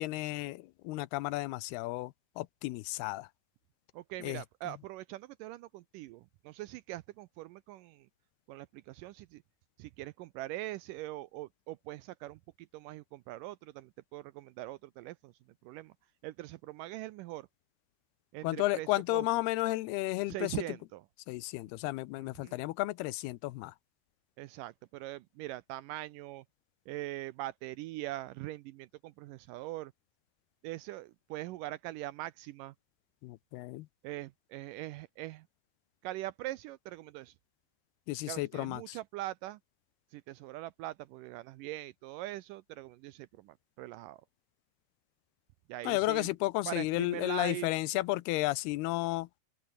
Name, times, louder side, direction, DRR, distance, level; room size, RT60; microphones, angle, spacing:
voice 1, 0.0-3.3 4.2-4.4 18.4-20.5 21.3-23.7 33.2-33.9 38.1-39.0 45.9-49.3, left 19 dB, 90° left, 2.8 m, -33 dB
voice 2, 3.9-8.1 8.5-9.4 9.8-15.3 15.6-15.9 16.2-17.5 18.3-19.3 20.3-21.0 22.2-22.6 24.4-26.5 26.9-29.9 30.6-32.8 34.0-35.5 36.0-37.3 38.3-39.6 40.1-44.2 45.7-46.3 46.7-47.7, right 16 dB, 85° right, 1.9 m, -42 dB
open air
omnidirectional pair, 4.4 m